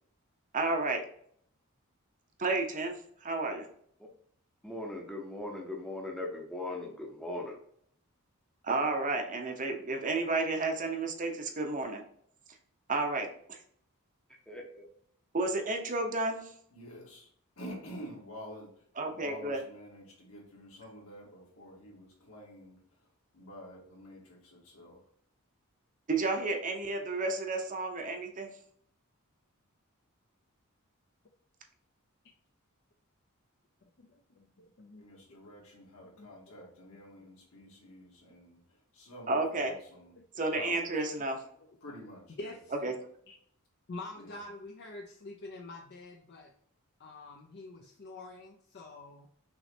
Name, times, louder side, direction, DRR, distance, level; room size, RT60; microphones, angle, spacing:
voice 1, 0.5-1.0 2.4-3.7 8.6-12.0 12.9-13.6 15.3-16.5 19.0-19.6 26.1-28.5 39.3-39.7 40.4-41.4 42.8-42.9, right 3 dB, 35° right, 4 dB, 0.7 m, -31 dB
voice 2, 4.6-7.6 14.5-14.8, left 2 dB, 5° left, -1 dB, 0.7 m, -39 dB
voice 3, 16.7-17.3 17.6-22.8 23.3-25.0 35.0-40.2 40.5-41.0 41.8-42.6 44.1-44.4, equal, 70° left, -3 dB, 1.9 m, -49 dB
voice 4, 33.8-35.0 35.3-35.4 36.2-36.3 37.2-37.3 40.2-40.3 42.4-42.7 43.3-43.4 43.9-46.5 47.0-49.3, left 2 dB, 50° left, 2 dB, 0.5 m, -46 dB
5.9 x 3.1 x 2.7 m, 0.66 s
head